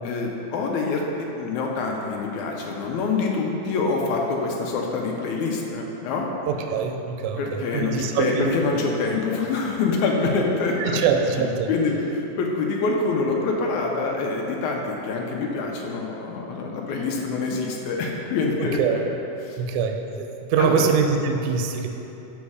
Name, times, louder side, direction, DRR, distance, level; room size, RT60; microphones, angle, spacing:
voice 1, 0.0-6.3 7.4-11.0 11.3-19.0 19.4-19.6 20.6-20.9, left 3 dB, 75° left, 0 dB, 1.9 m, -26 dB
voice 2, 6.5-8.5 10.8-11.7 18.8-19.0 19.6-21.9, right 6 dB, 80° right, 4 dB, 1.9 m, -24 dB
7.2 x 4.2 x 4.7 m, 3.0 s
omnidirectional pair, 3.7 m